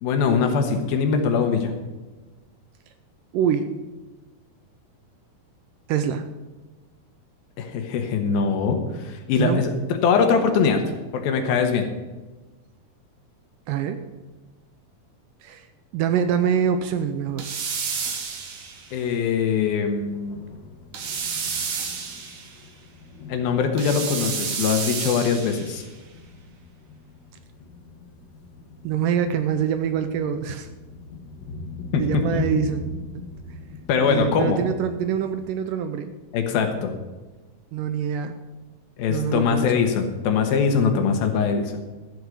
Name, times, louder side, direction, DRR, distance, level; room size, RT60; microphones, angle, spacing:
voice 1, 0.0-1.7 7.6-9.7 10.0-10.8 11.1-11.9 18.9-20.4 23.3-25.8 31.9-32.4 33.9-34.6 36.3-36.9 39.0-41.7, left 6 dB, 80° left, 5 dB, 3.1 m, -22 dB
voice 2, 3.3-3.7 5.9-6.3 9.4-9.6 13.7-14.0 15.4-15.7 15.9-17.5 28.8-30.7 32.0-32.8 34.0-36.1 37.7-38.3 39.1-39.7, right 8 dB, 80° right, 9 dB, 2.1 m, -24 dB
Thunder, 16.1-35.5, left 3 dB, 65° left, 1.1 m, -41 dB
sound 1, 17.4-19.0 20.9-22.6 23.8-25.8, right 6 dB, 60° right, 2.8 m, -30 dB
13.0 x 7.9 x 6.5 m, 1.2 s
omnidirectional pair, 4.3 m